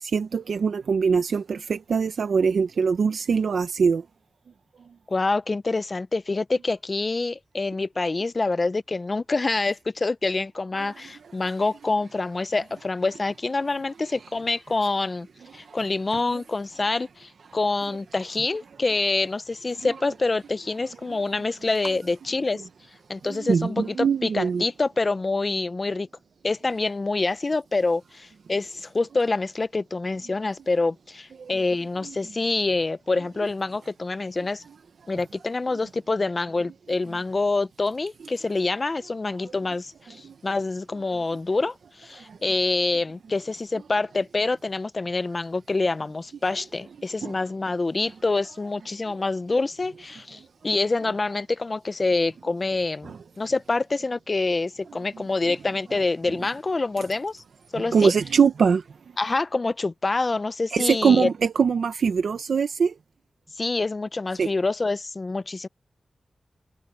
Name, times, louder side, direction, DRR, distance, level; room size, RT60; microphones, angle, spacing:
voice 1, 0.0-4.0 23.3-24.6 31.4-31.5 40.2-40.3 42.3-42.4 47.2-47.3 53.0-53.2 57.9-58.8 60.7-62.9 64.4-64.5, right 6 dB, 90° right, 0.7 m, -22 dB
voice 2, 5.1-15.3 15.5-22.6 23.1-26.1 26.4-34.6 35.1-57.4 57.7-58.1 59.2-61.3 63.6-65.7, left 3 dB, 40° left, 0.6 m, -26 dB
wide cardioid pair, 85°, 0 cm